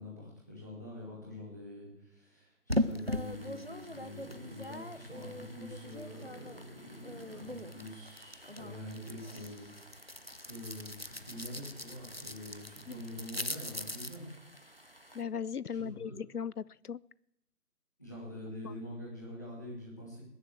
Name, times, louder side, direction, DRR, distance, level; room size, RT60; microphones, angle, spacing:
voice 1, 0.0-10.2 10.4-14.2 14.7-14.8 15.7-16.1 18.0-20.2, left 1 dB, 10° left, -6 dB, 2.4 m, -45 dB
sound 1, 2.7-6.6 6.9-14.2, left 1 dB, 40° right, 0.6 m, -39 dB
sound 2, 3.1-15.2, equal, 35° left, 0.9 m, -57 dB
voice 2, 15.1-17.0 18.6-18.7, left 7 dB, 70° left, 23 dB, 0.6 m, -38 dB
20.0 x 7.5 x 8.2 m, 0.79 s
figure-of-eight pair, 170°, 47 cm